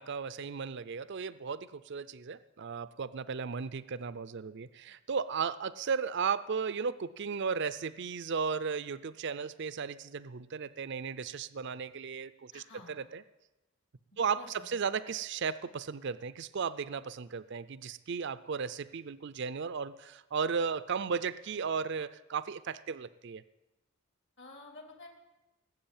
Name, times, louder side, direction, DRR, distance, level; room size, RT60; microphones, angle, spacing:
voice 1, 0.0-13.2 14.2-23.4, right 6 dB, 55° right, 16 dB, 0.5 m, -35 dB
voice 2, 12.5-12.9 14.2-14.6 24.4-25.1, left 3 dB, 60° left, 3 dB, 2.7 m, -50 dB
19.0 x 8.0 x 8.8 m, 1.0 s
head